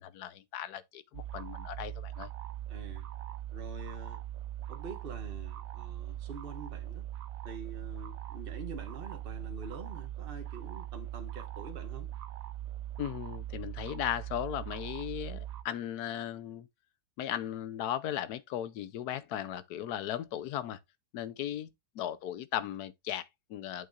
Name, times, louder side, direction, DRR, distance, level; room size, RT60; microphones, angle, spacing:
voice 1, 0.0-2.3 13.0-16.7 17.2-20.8 21.1-23.9, left 11 dB, 75° left, 1.2 m, -37 dB
sound 1, 1.1-15.6, right 12 dB, 65° right, 1.1 m, -41 dB
voice 2, 2.7-3.0 3.5-4.3 4.7-7.0 7.4-12.1, right 3 dB, 35° right, 1.5 m, -45 dB
8.5 x 7.5 x 2.5 m
omnidirectional pair, 1.7 m